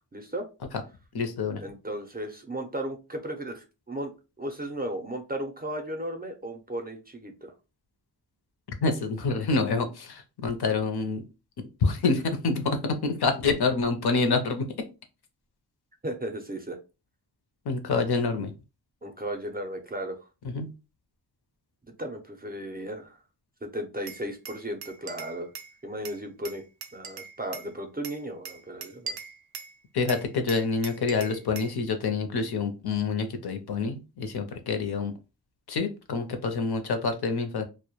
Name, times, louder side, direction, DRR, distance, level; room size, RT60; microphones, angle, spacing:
voice 1, 0.1-0.4 1.6-4.1 4.4-7.5 16.0-16.8 19.0-20.2 22.0-23.2 23.6-25.5 25.8-26.6 26.9-29.2, right 1 dB, 20° right, 4 dB, 0.5 m, -35 dB
voice 2, 1.1-1.6 8.8-11.2 11.8-14.7 17.7-18.5 20.4-20.7 29.9-35.1 35.7-37.7, left 4 dB, 65° left, 7 dB, 0.6 m, -27 dB
Glass, 24.1-25.7 26.0-27.7 28.0-29.7 30.1-31.8, right 6 dB, 85° right, 0.5 m, -41 dB
2.1 x 2.1 x 2.9 m, 0.29 s
wide cardioid pair, 95°, 42 cm